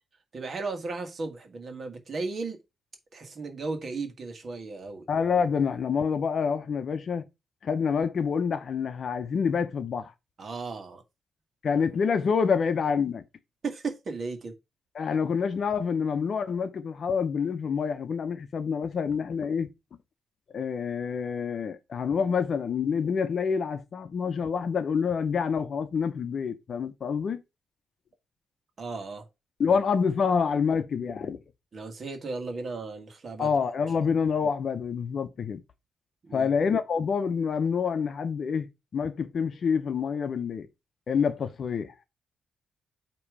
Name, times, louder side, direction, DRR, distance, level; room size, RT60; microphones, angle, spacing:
voice 1, 0.3-2.6 3.1-5.1 10.4-11.0 13.6-14.5 28.8-29.3 29.7-29.8 31.7-33.6 36.2-36.5, right 3 dB, 40° right, 1.6 m, -35 dB
voice 2, 5.1-7.3 7.6-10.1 11.6-13.2 14.9-19.7 20.5-27.4 29.6-31.4 33.4-35.6 36.3-40.7 41.1-41.9, left 6 dB, 50° left, 0.7 m, -27 dB
8.6 x 3.0 x 4.8 m
cardioid pair, 135°, 0 cm